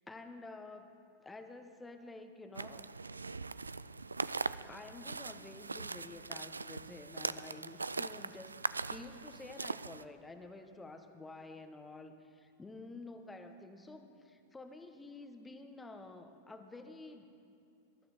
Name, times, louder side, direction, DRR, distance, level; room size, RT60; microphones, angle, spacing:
voice 1, 0.1-0.9 1.2-2.9 4.7-17.3, left 2 dB, 10° left, 7 dB, 1.2 m, -50 dB
sound 1, 2.5-10.0, right 3 dB, 80° right, 0.3 m, -41 dB
22.0 x 13.0 x 4.4 m, 2.6 s
figure-of-eight pair, 90°, 0 cm